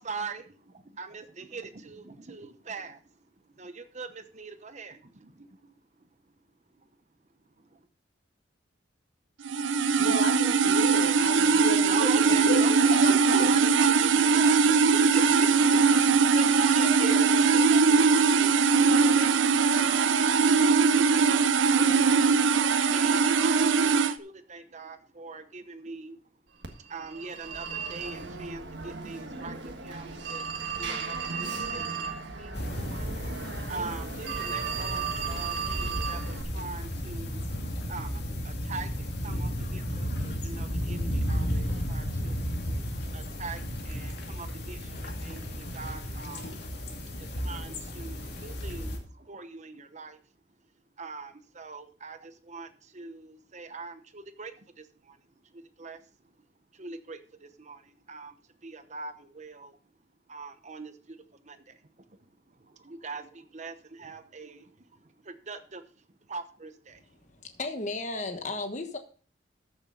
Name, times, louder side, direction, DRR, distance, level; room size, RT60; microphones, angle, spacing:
voice 1, 0.0-3.2 3.4-6.1 6.8-6.9 7.6-7.9 11.9-14.6 14.9-22.4 22.9-26.2 26.8-42.6 43.1-46.5 47.2-50.2 51.0-56.1 56.7-58.4 58.6-59.8 60.3-62.2 62.5-67.0, right 4 dB, 40° right, 10 dB, 0.9 m, -42 dB
sound 1, 9.4-24.1, right 5 dB, 90° right, 0.6 m, -21 dB
voice 2, 10.0-13.4 14.7-14.8 16.8-17.3, equal, 80° left, 2 dB, 2.6 m, -33 dB
Telephone, 26.6-36.4, right 5 dB, 70° right, 1.5 m, -35 dB
sound 2, 32.5-49.0, equal, 60° left, 2.3 m, -34 dB
voice 3, 67.3-69.0, left 3 dB, 40° left, 6 dB, 1.3 m, -34 dB
13.5 x 7.1 x 3.9 m, 0.39 s
head